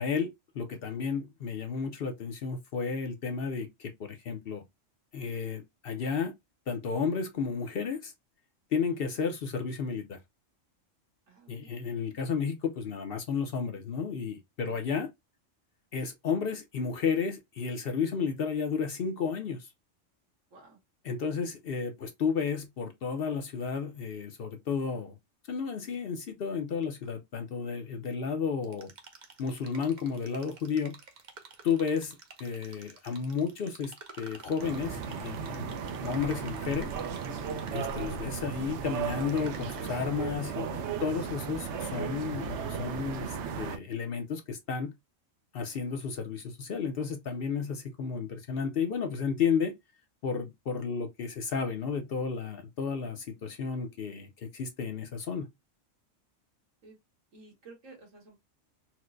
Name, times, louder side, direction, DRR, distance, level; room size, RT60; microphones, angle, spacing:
voice 1, 0.0-4.6 5.1-6.3 6.7-8.1 8.7-10.2 11.5-15.1 15.9-19.7 21.0-25.2 25.5-28.9 29.4-31.0 31.6-36.9 37.7-44.9 45.5-49.7 50.2-55.5, left 6 dB, 55° left, 0.7 m, -32 dB
voice 2, 11.3-11.8 14.6-14.8 20.5-20.8 56.8-57.0 57.3-58.4, right 3 dB, 85° right, 1.8 m, -53 dB
sound 1, 28.6-39.9, right 4 dB, 45° right, 0.7 m, -51 dB
sound 2, 34.6-43.8, right 6 dB, 70° right, 0.9 m, -35 dB
4.4 x 2.1 x 2.4 m
omnidirectional pair, 1.3 m